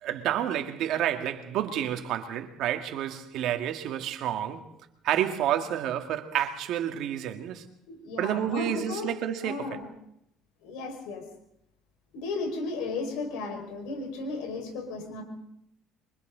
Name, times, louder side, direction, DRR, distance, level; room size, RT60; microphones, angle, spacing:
voice 1, 0.0-4.7 5.0-7.7 8.2-9.8, right 10 dB, 65° right, 2.0 m, -29 dB
voice 2, 7.9-9.1 9.4-9.8 10.6-11.3 12.1-15.2, left 3 dB, 90° left, 5.4 m, -34 dB
27.5 x 24.0 x 4.0 m
cardioid pair, 135°, 0 cm